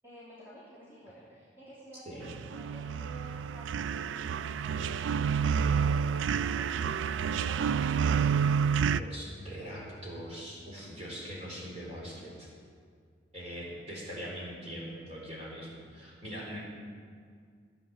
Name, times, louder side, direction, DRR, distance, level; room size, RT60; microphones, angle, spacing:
voice 1, 0.0-5.0 5.3-8.0, equal, 10° right, -10 dB, 3.0 m, -52 dB
sound 1, 2.2-9.0, right 7 dB, 75° right, 0.3 m, -29 dB
voice 2, 8.9-12.5 13.3-16.6, equal, 35° right, -5 dB, 3.9 m, -42 dB
15.0 x 8.0 x 7.1 m, 2.1 s
head